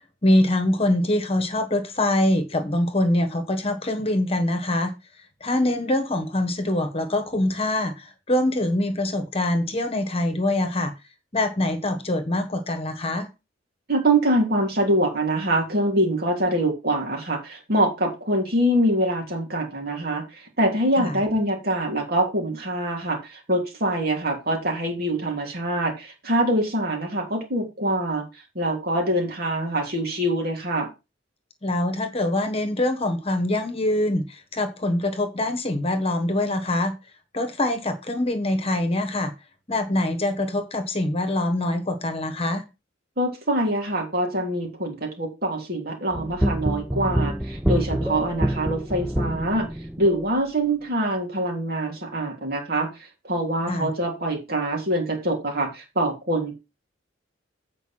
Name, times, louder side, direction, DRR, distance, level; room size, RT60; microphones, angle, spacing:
voice 1, 0.2-4.9 5.4-10.9 11.3-13.3 21.0-21.2 31.6-36.9 37.3-39.3 39.7-42.6 53.7-53.9, left 1 dB, 30° left, 1.3 m, -24 dB
voice 2, 13.9-28.2 28.5-30.9 43.2-49.7 50.0-52.9 53.2-56.5, right 1 dB, 55° right, 3.3 m, -24 dB
sound 1, 46.1-50.2, right 1 dB, 5° right, 0.6 m, -26 dB
8.3 x 5.2 x 5.9 m
head